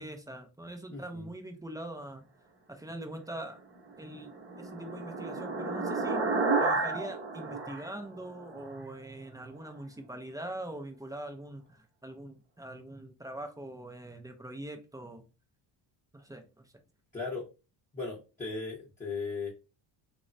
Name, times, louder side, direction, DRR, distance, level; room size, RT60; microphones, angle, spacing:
voice 1, 0.0-2.3 2.7-3.6 4.0-15.3 16.1-16.7, right 1 dB, 10° right, 5 dB, 0.4 m, -43 dB
voice 2, 0.9-1.3 17.1-17.5 17.9-19.5, left 4 dB, 15° left, -5 dB, 0.8 m, -37 dB
sound 1, 4.0-8.8, right 3 dB, 25° right, 0.9 m, -32 dB
3.0 x 2.1 x 2.5 m, 0.30 s
cardioid pair, 100°, 48 cm